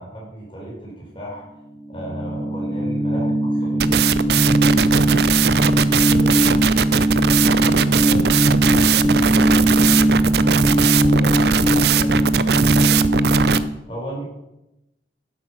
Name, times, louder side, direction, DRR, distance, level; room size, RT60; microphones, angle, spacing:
voice 1, 0.0-1.5 1.9-3.3 3.6-4.0 13.9-14.2, right 1 dB, 30° left, -4 dB, 4.9 m, -34 dB
sound 1, 1.9-13.6, right 1 dB, 20° right, 1.1 m, -19 dB
sound 2, 3.8-13.6, right 7 dB, 65° right, 0.5 m, -20 dB
voice 2, 5.9-6.6 7.6-8.3 8.9-13.1, left 1 dB, 60° left, -3 dB, 2.5 m, -38 dB
11.5 x 8.4 x 6.1 m, 0.91 s
head